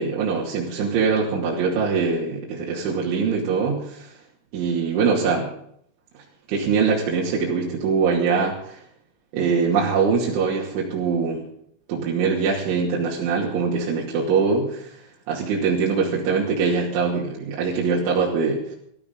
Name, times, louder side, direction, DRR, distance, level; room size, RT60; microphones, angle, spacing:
voice 1, 0.0-4.1 4.5-5.5 6.5-8.8 9.3-11.4 11.9-14.9 15.3-18.8, right 5 dB, 75° right, -4 dB, 4.8 m, -23 dB
19.0 x 14.0 x 4.0 m, 0.67 s
omnidirectional pair, 5.6 m